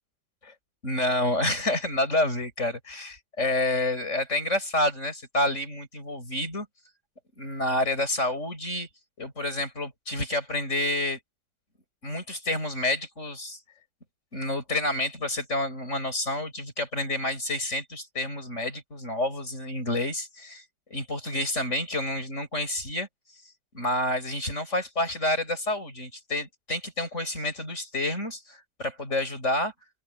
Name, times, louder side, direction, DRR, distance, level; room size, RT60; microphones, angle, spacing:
voice 1, 0.8-6.7 7.4-8.9 9.2-11.2 12.0-13.6 14.3-23.1 23.3-23.4 23.7-29.7, left 1 dB, 40° left, 8.0 m, -29 dB
open air
omnidirectional pair, 1.9 m